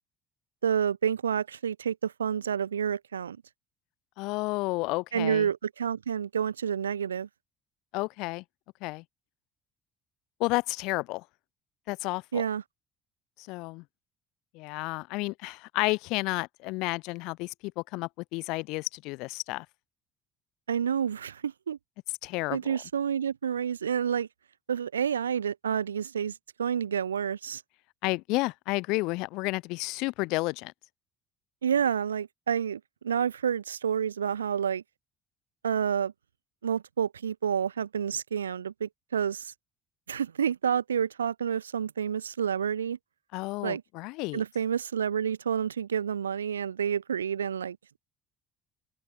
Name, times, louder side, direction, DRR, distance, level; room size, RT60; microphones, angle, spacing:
voice 1, 0.6-3.4 5.1-7.3 12.3-12.6 20.7-21.8 22.5-24.3 24.7-27.6 31.6-34.8 35.6-36.1 36.6-39.5 40.1-43.0 43.6-43.8 44.3-47.8, right 8 dB, 85° right, 7.2 m, -29 dB
voice 2, 4.2-5.5 7.9-8.4 8.8-9.0 10.4-11.2 11.9-12.4 13.4-13.8 14.5-19.7 22.2-22.8 28.0-30.7 43.3-44.4, left 24 dB, 65° left, 7.3 m, -31 dB
open air
hypercardioid pair, 55°, 0 cm